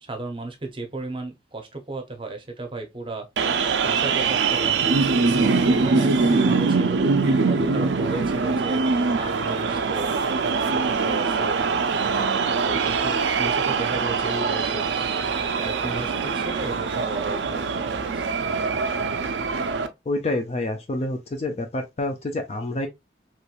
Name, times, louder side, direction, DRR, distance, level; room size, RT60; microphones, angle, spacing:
voice 1, 0.0-3.3 3.8-5.1 5.7-8.8 9.2-10.1 10.4-11.6 11.9-15.2 15.6-18.2, right 3 dB, 30° right, 0.6 m, -35 dB
sound 1, 3.4-19.9, right 4 dB, 80° right, 0.4 m, -23 dB
voice 2, 20.1-22.9, left 2 dB, 35° left, 0.4 m, -27 dB
3.0 x 3.0 x 2.3 m
head